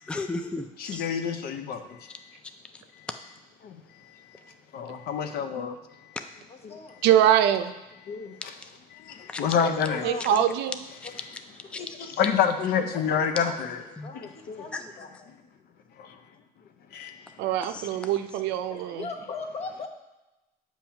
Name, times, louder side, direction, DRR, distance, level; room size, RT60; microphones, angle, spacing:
voice 1, 0.1-1.0 11.7-11.8 14.0-14.1 14.7-14.8 17.7-17.8, left 3 dB, 5° left, 7 dB, 0.3 m, -33 dB
voice 2, 0.8-1.8 3.6-3.8 4.7-5.8 6.6-6.8 8.1-8.5 8.9-10.0 10.3-10.5 12.2-13.8 14.1-14.7 16.0-16.1 16.9-17.1, left 7 dB, 65° left, 7 dB, 0.6 m, -28 dB
voice 3, 6.5-6.9 9.6-10.6 11.0-11.1 11.8-12.3 12.9-15.3 18.7-19.9, left 4 dB, 40° left, 4 dB, 0.9 m, -39 dB
voice 4, 7.0-7.7 10.0-10.8 17.4-19.1, right 11 dB, 90° right, 9 dB, 0.5 m, -23 dB
7.2 x 3.0 x 5.6 m, 1.0 s
cardioid pair, 110°, 17 cm